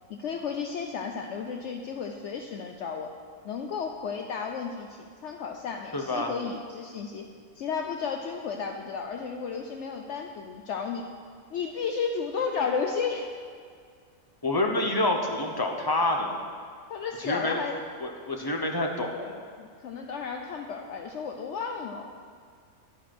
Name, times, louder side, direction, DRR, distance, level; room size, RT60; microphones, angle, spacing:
voice 1, 0.1-3.1 3.4-7.3 7.6-11.1 11.5-13.3 16.9-17.8 19.6-22.1, left 6 dB, 65° left, 3 dB, 0.8 m, -33 dB
voice 2, 5.9-6.3 14.4-16.4 17.2-17.6 18.0-19.4, left 2 dB, 25° left, 2 dB, 0.6 m, -27 dB
11.0 x 5.0 x 5.9 m, 2.1 s
omnidirectional pair, 1.5 m